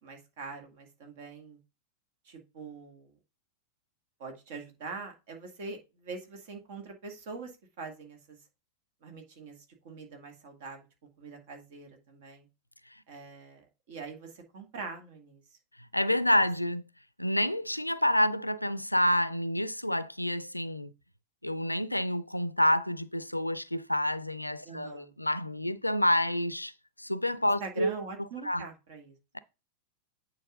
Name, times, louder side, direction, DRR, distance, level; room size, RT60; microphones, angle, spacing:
voice 1, 0.0-1.6 2.3-3.1 4.2-7.5 7.8-8.4 9.0-9.6 9.8-10.8 11.2-12.5 13.1-15.4 24.6-25.1 27.6-29.2, right 4 dB, 50° right, 2.1 m, -43 dB
voice 2, 15.9-16.8 17.2-20.9 21.4-26.7 27.0-27.9 28.4-28.7, left 1 dB, 85° left, 0.5 m, -28 dB
8.9 x 4.3 x 3.8 m
figure-of-eight pair, 90°, 0 cm